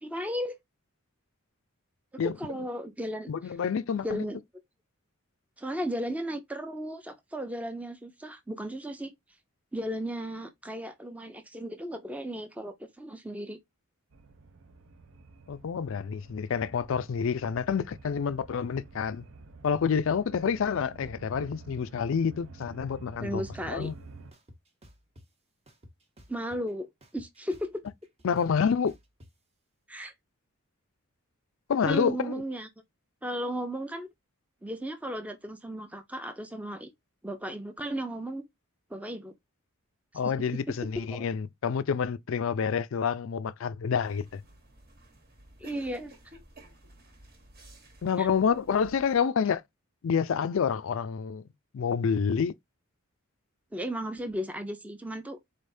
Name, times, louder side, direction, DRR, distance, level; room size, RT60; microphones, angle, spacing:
voice 1, 0.0-0.6 2.2-3.3 4.0-4.4 5.6-9.1 9.7-13.6 23.2-23.9 26.3-26.9 27.1-27.8 29.9-30.1 31.8-32.7 33.2-34.1 34.6-36.9 37.2-38.4 38.9-39.3 41.1-41.3 45.6-46.1 48.2-48.3 53.7-55.4, equal, 5° right, 0.5 m, -35 dB
voice 2, 3.3-4.2 15.5-19.2 19.6-23.9 28.2-28.9 31.7-32.4 40.1-44.4 48.0-49.6 50.0-51.4 51.7-52.5, left 6 dB, 65° left, 0.4 m, -28 dB
sound 1, 14.1-24.3, right 3 dB, 60° right, 0.6 m, -49 dB
sound 2, 23.8-23.9 24.3-25.3 25.7-26.7 27.0-29.3, equal, 30° right, 0.9 m, -53 dB
sound 3, 44.0-49.2, right 1 dB, 45° right, 1.2 m, -54 dB
4.0 x 3.3 x 2.6 m
head